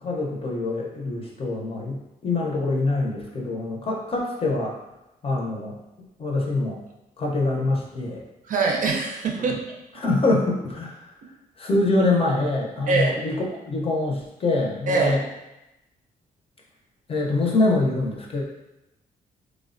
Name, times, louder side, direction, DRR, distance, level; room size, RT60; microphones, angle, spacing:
voice 1, 0.0-4.8 5.2-6.8 7.2-8.2 9.3-9.6 9.9-11.1 11.6-15.2 17.1-18.4, left 2 dB, 35° left, -1 dB, 0.6 m, -25 dB
voice 2, 8.5-9.5 12.9-13.1 14.9-15.2, right 4 dB, 60° right, 1 dB, 0.5 m, -23 dB
3.2 x 2.1 x 2.5 m, 0.95 s
cardioid pair, 85°, 16 cm